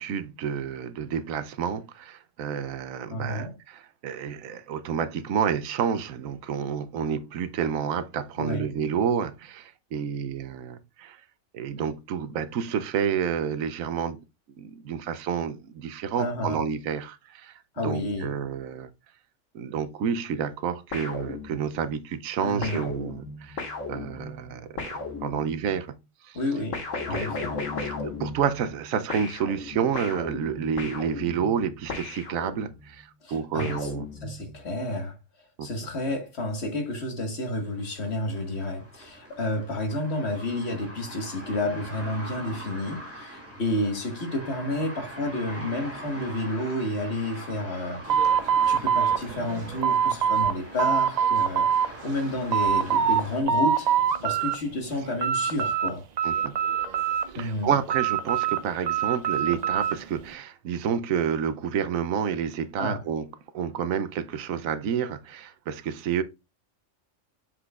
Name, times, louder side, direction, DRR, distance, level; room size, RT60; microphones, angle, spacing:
voice 1, 0.0-11.2 11.5-14.2 14.6-18.9 19.5-23.6 23.9-24.8 25.2-25.9 26.2-26.4 27.1-27.3 27.8-34.1 35.6-35.7 56.2-56.6 57.3-63.3 63.5-66.2, right 7 dB, 90° right, 1.1 m, -29 dB
voice 2, 3.1-3.5 8.4-8.7 16.2-16.6 17.8-18.3 22.4-22.9 26.3-26.8 27.1-27.6 33.2-33.9 34.2-35.2 35.6-48.0 48.7-53.9 54.2-56.0 57.4-57.7 62.8-63.0, left 1 dB, 55° left, 1.8 m, -30 dB
sound 1, 20.9-21.9 22.6-25.8 26.7-28.8 29.1-32.9 33.6-34.6, left 3 dB, 75° left, 1.9 m, -36 dB
sound 2, 37.6-53.4, right 1 dB, 10° right, 2.1 m, -43 dB
sound 3, 48.1-50.5 50.8-51.9 52.3-53.2 53.5-54.6 54.9-55.9 56.2-57.4 57.9-60.0, right 8 dB, 60° right, 0.4 m, -24 dB
7.3 x 6.2 x 2.3 m
omnidirectional pair, 1.4 m